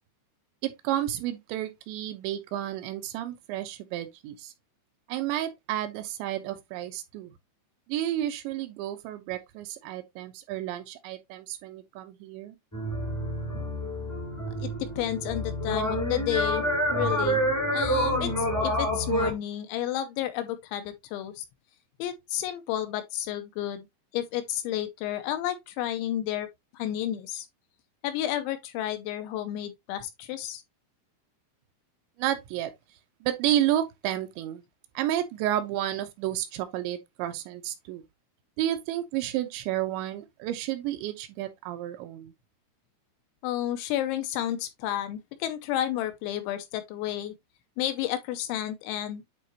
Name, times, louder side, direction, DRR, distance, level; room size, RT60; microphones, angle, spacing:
voice 1, 0.6-4.5 5.1-7.3 7.9-12.5 32.2-32.7 33.2-34.6 35.0-38.0 38.6-42.3, right 12 dB, 80° right, 2.7 m, -31 dB
sound 1, 12.7-19.3, equal, 10° left, 0.8 m, -28 dB
voice 2, 14.6-17.4 17.7-21.5 22.0-23.9 24.1-26.5 26.7-27.5 28.0-30.6 43.4-47.3 47.8-49.2, left 12 dB, 85° left, 2.8 m, -31 dB
9.4 x 4.0 x 2.7 m
omnidirectional pair, 5.7 m